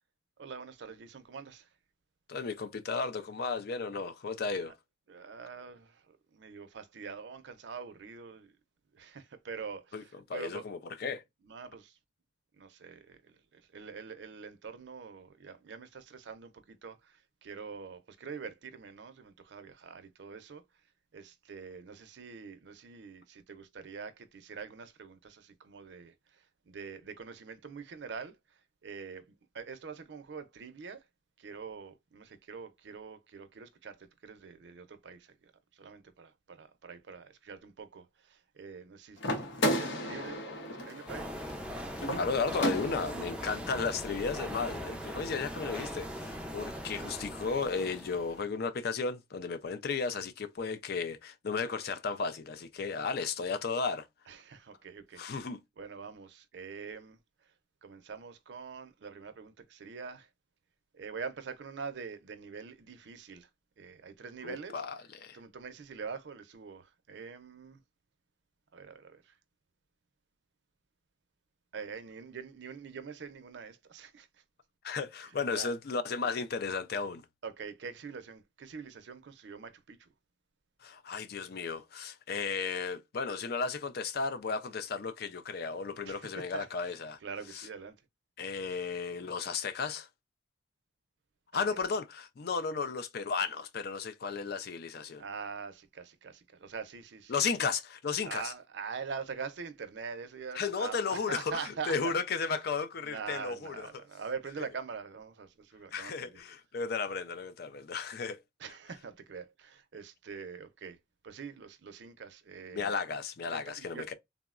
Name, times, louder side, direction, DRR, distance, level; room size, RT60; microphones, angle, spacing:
voice 1, 0.4-1.6 4.5-4.6 5.1-5.9 6.3-8.5 9.0-9.8 10.3-10.6 11.5-11.9 12.6-13.2 13.5-17.0 17.4-20.6 21.1-26.1 26.7-28.3 28.8-29.2 29.5-31.0 31.4-33.9 34.2-35.2 35.8-38.0 38.6-40.4 40.8-41.3 54.3-55.2 55.8-57.2 57.8-60.3 61.0-63.5 63.8-64.8 65.3-67.8 68.7-69.2 71.7-74.3 75.5-75.7 77.4-80.0 86.1-86.7 87.2-87.9 95.2-97.3 98.3-102.1 103.0-106.1 108.6-111.0 111.2-112.9 113.5-114.0, right 5 dB, 65° right, 0.5 m, -44 dB
voice 2, 2.3-4.7 9.9-11.2 42.2-54.1 55.2-55.6 64.4-65.4 74.8-77.2 80.8-87.2 87.4-87.7 88.4-90.1 91.5-95.2 97.3-98.5 100.5-104.1 105.9-108.4 112.7-114.1, left 5 dB, 55° left, 0.4 m, -34 dB
sound 1, 39.2-43.3, equal, 85° left, 0.8 m, -34 dB
sound 2, 41.1-48.5, equal, 5° right, 0.4 m, -40 dB
3.6 x 2.1 x 2.3 m
head